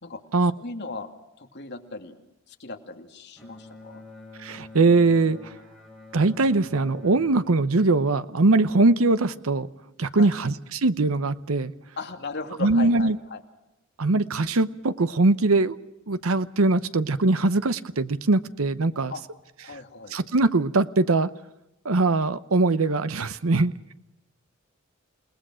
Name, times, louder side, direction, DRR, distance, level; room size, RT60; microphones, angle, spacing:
voice 1, 0.6-1.1 1.4-2.2 2.5-4.0 10.1-10.4 12.0-13.4 19.1-19.2 19.6-20.1, left 3 dB, 55° left, 4 dB, 2.6 m, -37 dB
Bowed string instrument, 3.4-8.8, left 2 dB, ahead, 4.5 m, -47 dB
voice 2, 4.4-5.5 6.1-9.7 10.0-11.7 12.6-13.2 14.0-15.8 16.1-19.1 20.1-21.3 21.8-23.7, right 3 dB, 90° right, 13 dB, 0.9 m, -21 dB
29.0 x 19.5 x 6.3 m, 0.92 s
head